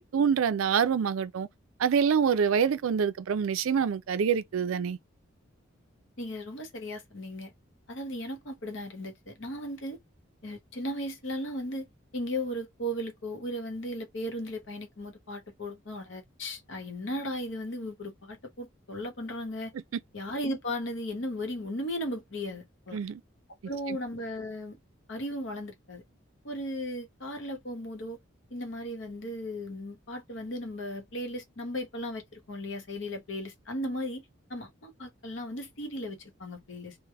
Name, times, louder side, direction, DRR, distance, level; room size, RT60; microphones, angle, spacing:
voice 1, 0.0-1.5 1.8-5.0 22.9-23.2 23.9-24.0, right 7 dB, 85° right, 0.4 m, -26 dB
voice 2, 6.2-7.5 7.9-10.0 10.4-11.8 12.1-19.7 20.1-23.0 23.6-24.8 25.1-26.0 26.4-28.2 28.5-34.2 34.5-37.0, equal, 65° left, 0.9 m, -36 dB
3.3 x 2.1 x 3.3 m
head